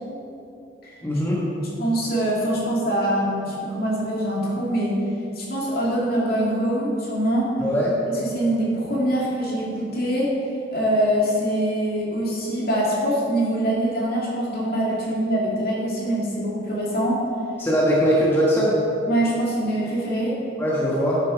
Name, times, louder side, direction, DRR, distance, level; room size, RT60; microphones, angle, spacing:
voice 1, 1.0-1.4 7.6-7.9 17.6-18.8 20.6-21.2, equal, 10° left, -6 dB, 1.2 m, -20 dB
voice 2, 1.8-5.0 5.4-7.6 8.1-10.3 10.7-17.3 19.1-20.4, right 1 dB, 50° left, -4 dB, 2.2 m, -24 dB
11.0 x 6.5 x 5.0 m, 2.8 s
head